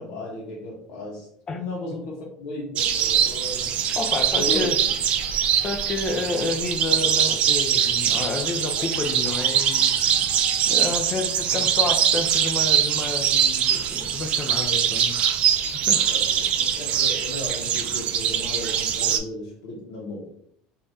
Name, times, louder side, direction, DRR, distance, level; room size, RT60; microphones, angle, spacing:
voice 1, 0.0-3.8 4.3-4.7 6.3-6.5 11.5-11.7 14.6-14.9 15.9-20.3, left 2 dB, 75° left, -4 dB, 0.7 m, -35 dB
sound 1, 2.8-19.2, right 9 dB, 45° right, 0.3 m, -23 dB
voice 2, 3.9-4.8 5.6-9.9 10.7-15.1 15.7-16.0, left 4 dB, 30° left, 5 dB, 0.4 m, -30 dB
3.2 x 2.3 x 2.6 m, 0.67 s
cardioid pair, 140°, 3 cm